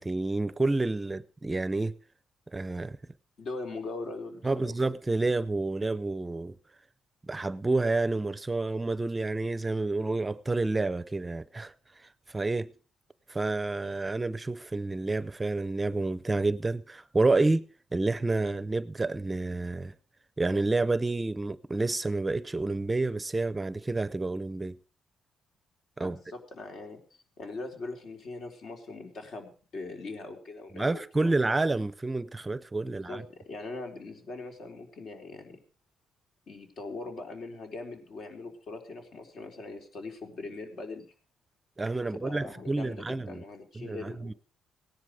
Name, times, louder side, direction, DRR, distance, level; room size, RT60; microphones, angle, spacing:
voice 1, 0.0-2.0 2.5-3.0 4.4-6.6 7.2-12.7 13.3-17.7 17.9-19.9 20.4-24.8 26.0-26.2 30.7-33.2 41.8-43.4 43.8-44.3, right 2 dB, 20° right, 0.6 m, -29 dB
voice 2, 3.4-4.7 26.0-31.3 32.9-35.6 36.5-41.0 42.1-44.4, left 3 dB, 60° left, 4.2 m, -41 dB
17.0 x 11.0 x 4.9 m
cardioid pair, 90°, 0 cm